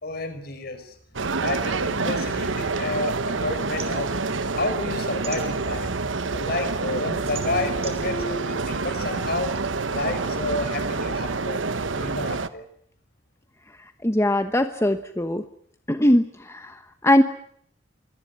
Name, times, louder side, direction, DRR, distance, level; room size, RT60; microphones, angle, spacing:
voice 1, 0.0-4.2 4.6-5.9 6.3-9.5 9.9-11.6 11.9-12.6, left 2 dB, 55° left, 9 dB, 5.2 m, -30 dB
sound 1, 1.2-12.5, right 3 dB, 80° right, 1.1 m, -27 dB
sound 2, 2.4-3.2 3.5-6.1 6.5-9.7, right 6 dB, 30° right, 3.2 m, -42 dB
sound 3, 7.0-8.6, right 1 dB, 80° left, 5.6 m, -38 dB
voice 2, 14.0-15.4 15.9-17.2, left 1 dB, 15° left, 8 dB, 1.1 m, -21 dB
24.5 x 18.0 x 9.6 m, 0.66 s
head